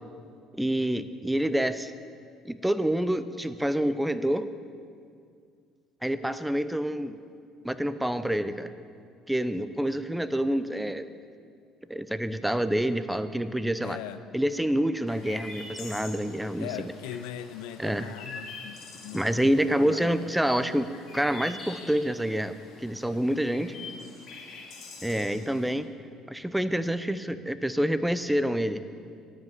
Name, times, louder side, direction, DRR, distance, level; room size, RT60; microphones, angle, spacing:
voice 1, 0.5-1.9 2.4-4.5 6.0-7.2 7.6-8.7 9.3-11.1 11.9-14.0 14.3-16.7 17.8-18.1 19.1-23.7 25.0-25.9 26.3-28.8, right 1 dB, 5° right, 12 dB, 0.6 m, -27 dB
voice 2, 13.8-14.3 16.6-20.3, left 11 dB, 85° left, 13 dB, 0.5 m, -40 dB
Chirp tweet, 15.1-25.7, left 3 dB, 65° left, 2.2 m, -45 dB
10.5 x 7.5 x 8.0 m, 2.2 s
supercardioid pair, 75°, 0 cm